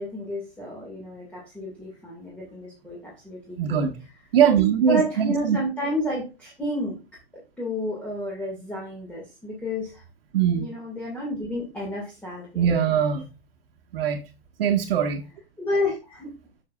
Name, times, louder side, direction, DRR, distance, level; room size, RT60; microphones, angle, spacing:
voice 1, 0.0-3.9 4.9-7.0 7.6-10.0 10.6-12.9 15.6-16.4, left 1 dB, 5° left, 2.0 m, -31 dB
voice 2, 3.6-3.9 4.3-5.6 10.3-10.6 12.5-13.3 13.9-14.2 14.6-15.2, right 8 dB, 65° right, 1.4 m, -21 dB
8.1 x 6.4 x 2.4 m
hypercardioid pair, 140°, 31 cm